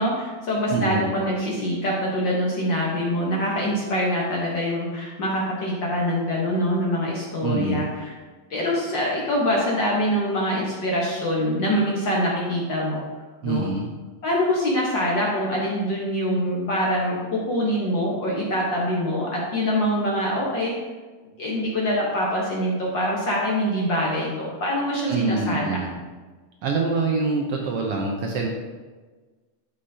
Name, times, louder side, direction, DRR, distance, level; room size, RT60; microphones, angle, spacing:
voice 1, 0.0-8.1 8.5-13.0 13.4-13.7 14.2-20.8 21.4-25.8, equal, 60° left, -4 dB, 1.2 m, -24 dB
voice 2, 0.7-1.1 7.4-7.9 13.4-13.9 25.1-25.9 26.6-28.5, right 3 dB, 90° right, 0 dB, 1.3 m, -25 dB
13.0 x 5.6 x 2.8 m, 1.3 s
omnidirectional pair, 3.7 m